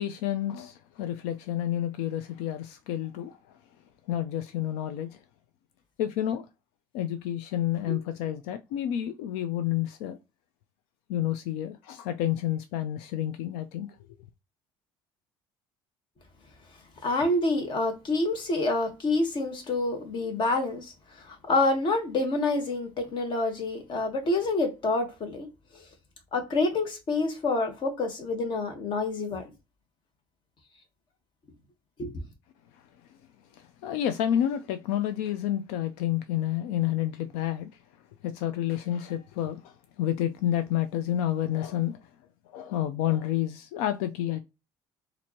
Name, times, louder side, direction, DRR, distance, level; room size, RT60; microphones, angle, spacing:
voice 1, 0.0-3.6 4.1-5.2 6.0-6.5 6.9-10.2 11.1-14.0 32.7-32.9 33.5-37.7 38.2-42.1 42.5-44.4, left 11 dB, 90° left, 0.4 m, -30 dB
voice 2, 17.0-25.5 25.7-25.8 26.3-29.5 32.0-32.1, left 2 dB, 50° left, 1.3 m, -27 dB
4.3 x 2.6 x 2.9 m
cardioid pair, 100°, 10 cm